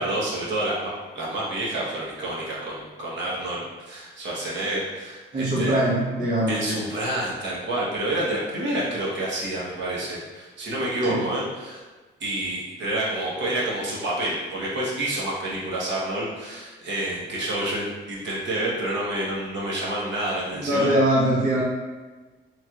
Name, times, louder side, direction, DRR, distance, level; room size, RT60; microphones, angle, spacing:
voice 1, 0.0-5.8 6.5-11.8 12.2-20.9, right 1 dB, 65° right, -6 dB, 1.0 m, -28 dB
voice 2, 5.3-6.9 11.0-11.3 20.5-21.6, right 1 dB, 40° right, -6 dB, 0.8 m, -22 dB
3.1 x 2.8 x 2.3 m, 1.3 s
cardioid pair, 90°, 20 cm